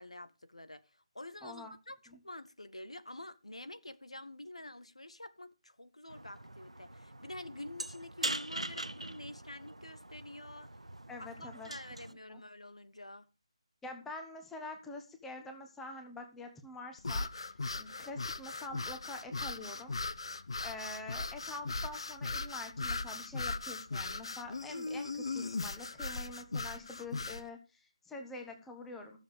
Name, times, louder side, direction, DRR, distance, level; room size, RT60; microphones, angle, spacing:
voice 1, 0.0-10.8 11.2-13.3, left 1 dB, 75° left, 1.0 m, -48 dB
voice 2, 1.4-1.7 11.1-11.7 12.3-12.4 13.8-17.3 17.8-20.0 20.6-29.2, left 2 dB, 5° left, 1.3 m, -46 dB
sound 1, 6.1-12.1, right 1 dB, 80° right, 0.7 m, -42 dB
sound 2, 17.0-27.5, left 3 dB, 55° left, 0.8 m, -38 dB
14.0 x 7.1 x 4.9 m
figure-of-eight pair, 150°, 3 cm